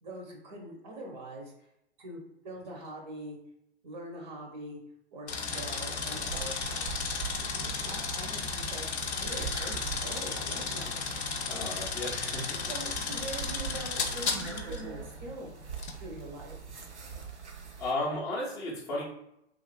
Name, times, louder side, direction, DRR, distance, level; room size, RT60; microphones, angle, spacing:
voice 1, 0.0-1.7 2.0-3.4 3.8-4.8 5.1-7.0 7.8-8.9 9.1-11.7 12.6-15.7 16.0-16.6, right 1 dB, 40° right, 0 dB, 0.6 m, -43 dB
sound 1, 5.3-14.8 15.8-16.0, left 5 dB, 75° left, 0.5 m, -34 dB
sound 2, 6.1-17.9, right 6 dB, 85° right, 0.6 m, -43 dB
voice 2, 9.3-9.6 11.5-12.6 17.8-19.0, left 1 dB, 10° left, -4 dB, 0.4 m, -34 dB
3.0 x 2.3 x 2.2 m, 0.79 s
figure-of-eight pair, 105°, 34 cm